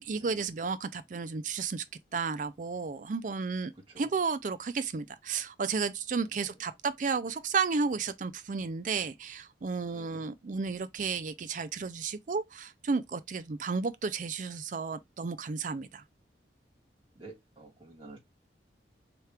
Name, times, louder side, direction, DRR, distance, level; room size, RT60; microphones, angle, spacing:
voice 1, 0.0-1.8 2.1-16.0, right 5 dB, 45° right, 0.4 m, -33 dB
voice 2, 17.2-18.2, right 2 dB, 25° right, 1.9 m, -50 dB
4.7 x 3.0 x 3.3 m
head